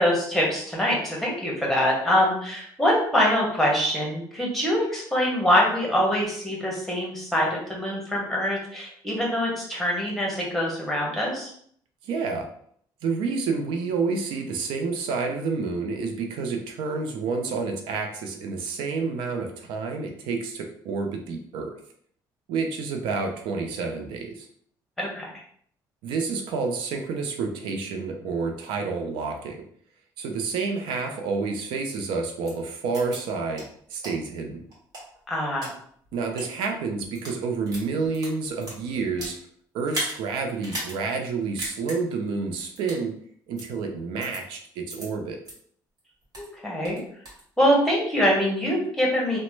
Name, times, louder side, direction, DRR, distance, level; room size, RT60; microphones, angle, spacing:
voice 1, 0.0-11.5 25.0-25.3 35.3-35.7 46.4-47.0 47.6-49.4, equal, 5° left, -3 dB, 1.1 m, -24 dB
voice 2, 12.0-12.5 13.0-21.8 22.5-24.5 26.0-29.6 30.2-33.6 33.9-34.6 36.1-39.4 39.7-43.1 43.5-45.4, right 4 dB, 85° right, 4 dB, 0.5 m, -29 dB
sound 1, 32.4-32.5 32.9-33.2 33.5-33.6 34.0-34.1 34.7-35.7 36.2-36.4 37.0-37.4 37.7-39.4 39.8-40.2 40.6-40.9 41.2-41.3 41.6-42.0 42.8-43.0 43.6-43.7 44.2-44.4 44.9-45.0 45.4-45.5 46.0-46.5 46.8-47.4, right 1 dB, 50° right, 1.5 m, -35 dB
2.9 x 2.1 x 3.1 m, 0.62 s
cardioid pair, 110°, 8 cm